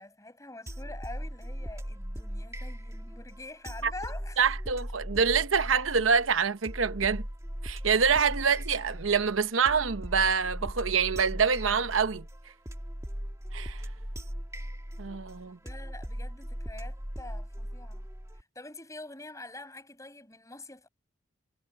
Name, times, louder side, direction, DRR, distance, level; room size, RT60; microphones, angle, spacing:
voice 1, 0.0-4.6 8.4-8.6 15.6-18.1 18.3-20.9, left 2 dB, 15° left, 7.3 m, -46 dB
sound 1, 0.7-18.4, equal, 15° right, 1.9 m, -39 dB
voice 2, 4.4-7.2 7.6-12.2 13.5-13.8 15.0-15.6, right 6 dB, 90° right, 0.9 m, -26 dB
head